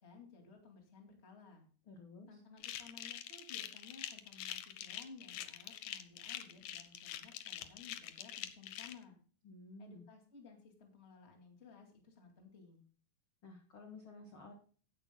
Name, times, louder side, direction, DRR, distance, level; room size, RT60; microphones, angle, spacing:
voice 1, 0.0-1.6 2.3-9.2 9.8-12.8, left 4 dB, 25° left, 2 dB, 1.7 m, -57 dB
voice 2, 1.9-2.4 9.4-10.0 13.4-14.5, left 3 dB, 50° left, 3 dB, 1.6 m, -53 dB
sound 1, 2.6-8.9, left 12 dB, 85° left, 1.7 m, -45 dB
16.0 x 10.5 x 2.2 m, 0.41 s
omnidirectional pair, 4.6 m